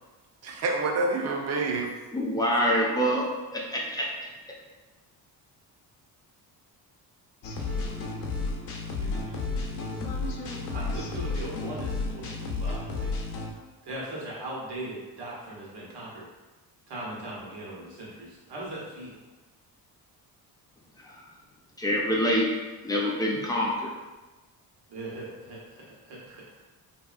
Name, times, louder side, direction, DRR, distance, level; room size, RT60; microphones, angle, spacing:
voice 1, 0.4-1.9, right 3 dB, 40° right, 0 dB, 0.5 m, -27 dB
voice 2, 2.1-3.2 3.5-4.1 21.1-21.2 21.8-22.4 22.8-23.9, equal, 10° left, -3 dB, 0.5 m, -25 dB
sound 1, 7.4-13.5, left 3 dB, 60° left, 0.6 m, -32 dB
voice 3, 9.0-13.1 13.8-16.2 16.9-19.1 24.9-26.4, right 1 dB, 80° right, -5 dB, 1.1 m, -40 dB
3.0 x 2.7 x 2.4 m, 1.2 s
cardioid pair, 105°, 40 cm